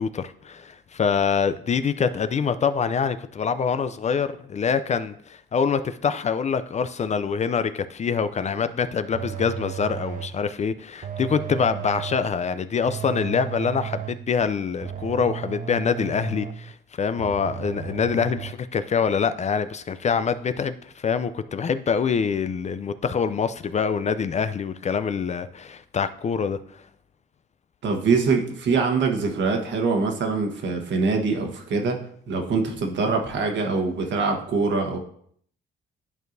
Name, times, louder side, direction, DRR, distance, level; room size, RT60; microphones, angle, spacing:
voice 1, 0.0-26.8, left 6 dB, 35° left, 12 dB, 0.4 m, -25 dB
sound 1, 9.1-10.5 11.0-12.4 12.9-14.3 14.8-16.7 17.2-18.5, right 9 dB, 40° right, 0.5 m, -34 dB
voice 2, 27.8-35.0, right 4 dB, 65° right, 3 dB, 1.3 m, -24 dB
10.5 x 4.6 x 2.6 m, 0.63 s
cardioid pair, 90°, 20 cm